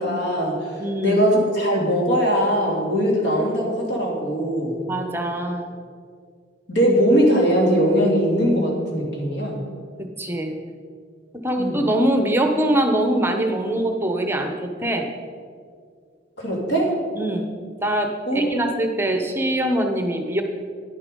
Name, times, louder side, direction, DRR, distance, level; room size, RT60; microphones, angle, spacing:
voice 1, 0.0-0.7 1.0-4.8 6.7-9.6 11.6-11.8 16.4-16.9 18.3-18.6, equal, 80° left, -1 dB, 2.7 m, -20 dB
voice 2, 0.8-1.2 4.9-5.7 10.0-10.6 11.4-15.1 17.1-17.5 17.8-20.4, right 1 dB, 10° right, 4 dB, 0.7 m, -23 dB
9.9 x 9.7 x 5.3 m, 2.1 s
head